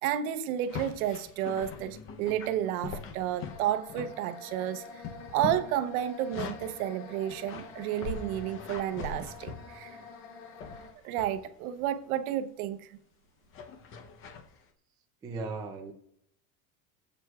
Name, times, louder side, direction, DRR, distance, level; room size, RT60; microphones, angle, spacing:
voice 1, 0.0-5.0 5.3-10.0 11.0-13.0, right 11 dB, 70° right, 0.8 m, -31 dB
sound 1, 0.6-4.5 4.8-6.8 7.3-10.1 10.6-11.4 11.8-12.1 13.5-14.5, left 5 dB, 30° left, 0.7 m, -42 dB
sound 2, 3.4-10.9, left 4 dB, 60° left, 2.1 m, -47 dB
voice 2, 15.2-15.9, right 3 dB, 10° right, 0.3 m, -37 dB
24.0 x 7.9 x 2.3 m
supercardioid pair, 165°, 45 cm